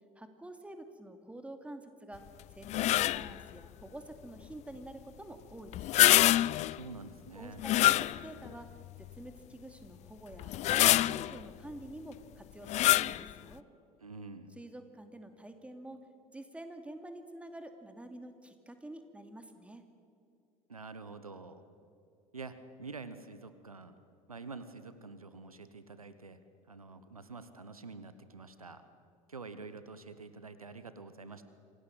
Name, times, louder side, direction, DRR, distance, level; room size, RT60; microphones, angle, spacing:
voice 1, 0.2-2.3 2.5-6.2 7.3-13.6 14.6-16.0 16.3-19.9, right 1 dB, 5° right, 7 dB, 2.6 m, -48 dB
sound 1, 2.7-3.4 5.7-6.8 7.6-8.5 9.1-9.2 10.4-11.4 12.7-13.2, left 15 dB, 40° left, 0.5 m, -25 dB
voice 2, 6.6-7.6 14.0-14.6 20.7-21.7 22.3-23.9 24.3-26.4 26.7-28.8 29.3-31.4, right 4 dB, 90° right, 12 dB, 1.1 m, -47 dB
26.5 x 18.0 x 7.6 m, 2.5 s
figure-of-eight pair, 70°, 18 cm